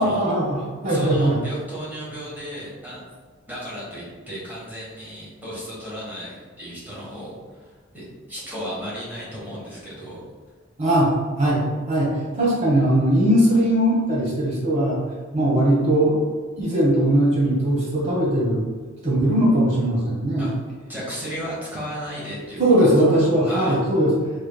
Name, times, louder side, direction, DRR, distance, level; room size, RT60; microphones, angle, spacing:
voice 1, 0.0-1.4 10.8-11.1 11.4-11.6 11.9-15.0 15.3-16.2 16.6-18.6 19.0-20.5 22.6-24.1, right 1 dB, 35° right, -5 dB, 1.3 m, -19 dB
voice 2, 0.8-3.0 3.5-10.2 20.4-20.5 20.9-22.9 23.4-23.8, equal, 10° right, -7 dB, 1.3 m, -34 dB
4.2 x 3.4 x 2.3 m, 1.5 s
head